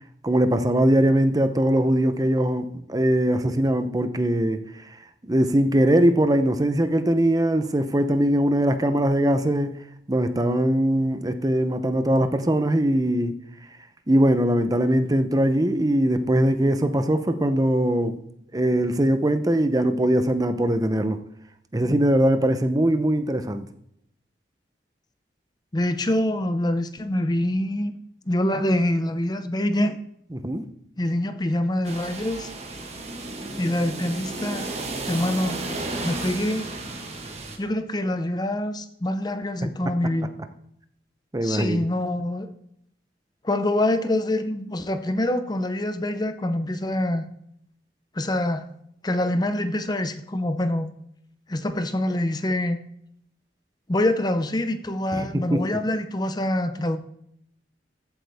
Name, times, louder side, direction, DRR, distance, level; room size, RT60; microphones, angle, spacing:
voice 1, 0.2-4.6 5.2-9.8 10.1-13.3 14.1-18.2 18.5-21.2 21.7-23.7 30.3-30.7 41.3-41.8 55.1-55.6, right 1 dB, 20° right, 0.7 m, -21 dB
voice 2, 25.7-27.9 28.3-30.0 31.0-32.5 33.6-34.7 35.1-35.6 36.0-36.6 37.6-40.3 41.4-42.5 43.4-47.2 48.1-48.6 49.0-50.9 51.5-52.8 53.9-57.0, left 1 dB, 20° left, 0.7 m, -25 dB
sound 1, 31.8-37.6, right 2 dB, 35° right, 1.5 m, -33 dB
14.5 x 8.1 x 3.5 m
head